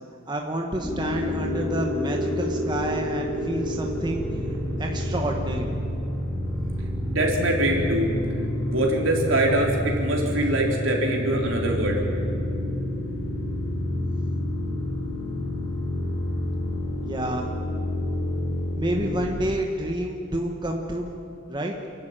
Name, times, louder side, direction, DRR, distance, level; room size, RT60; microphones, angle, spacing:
voice 1, 0.3-5.7 17.0-17.5 18.7-21.1 21.5-21.9, right 1 dB, 20° right, 1 dB, 1.3 m, -29 dB
sound 1, 0.8-19.2, left 1 dB, 10° left, 3.8 m, -28 dB
voice 2, 7.1-8.1 8.7-12.0, right 1 dB, 70° right, -1 dB, 3.9 m, -23 dB
28.0 x 12.0 x 8.9 m, 2.6 s
head